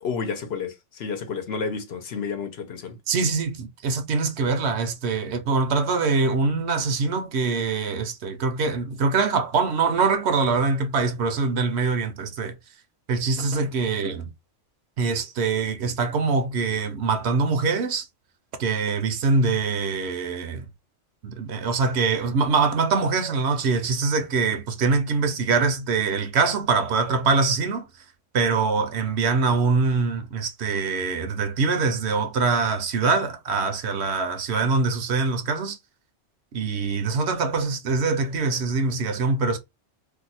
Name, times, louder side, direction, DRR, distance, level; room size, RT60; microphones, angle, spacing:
voice 1, 0.0-3.0, left 5 dB, 60° left, 0.9 m, -31 dB
voice 2, 3.1-12.5 13.1-14.3 15.0-18.1 18.6-20.7 21.2-27.9 28.3-35.8 36.5-39.6, right 4 dB, 70° right, 0.8 m, -23 dB
2.6 x 2.3 x 4.1 m
omnidirectional pair, 1.3 m